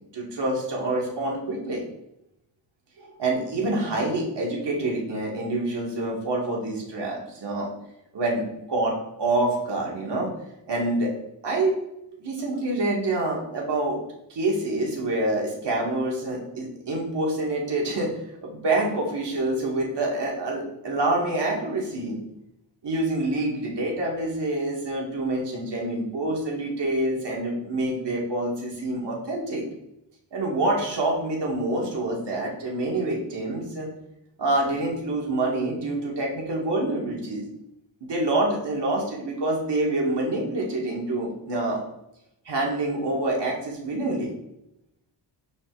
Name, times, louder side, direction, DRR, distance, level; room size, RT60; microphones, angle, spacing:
voice 1, 0.1-1.8 3.0-7.7 8.1-8.4 8.7-10.3 10.7-11.1 11.4-11.8 12.2-14.0 14.3-18.1 18.4-22.2 22.8-29.6 30.3-33.9 34.4-37.4 38.0-41.8 42.5-44.3, right 2 dB, 70° right, -2 dB, 2.3 m, -26 dB
12.0 x 4.4 x 3.2 m, 0.85 s
wide cardioid pair, 105°, 43 cm